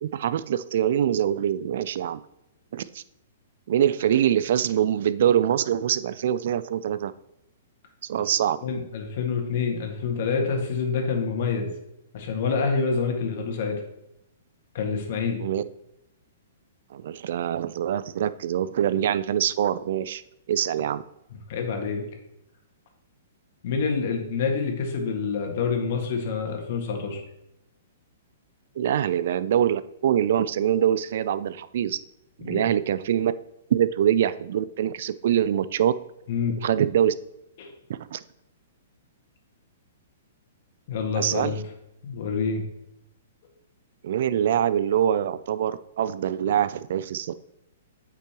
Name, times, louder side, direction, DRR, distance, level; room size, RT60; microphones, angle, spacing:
voice 1, 0.0-2.2 2.7-3.0 3.7-7.1 8.1-8.6 15.4-15.6 16.9-20.2 20.5-21.0 28.8-32.0 32.4-33.3 33.7-35.9 36.6-37.1 37.9-38.2 41.2-41.6 44.0-47.3, right 10 dB, 60° right, 16 dB, 0.4 m, -24 dB
voice 2, 8.6-11.7 12.1-13.8 14.7-15.4 21.5-22.0 23.6-27.2 32.4-32.6 36.3-36.6 37.6-37.7 40.9-41.6 42.0-42.7, left 5 dB, 55° left, 2 dB, 1.9 m, -27 dB
8.5 x 6.0 x 3.0 m, 0.85 s
hypercardioid pair, 120°, 0 cm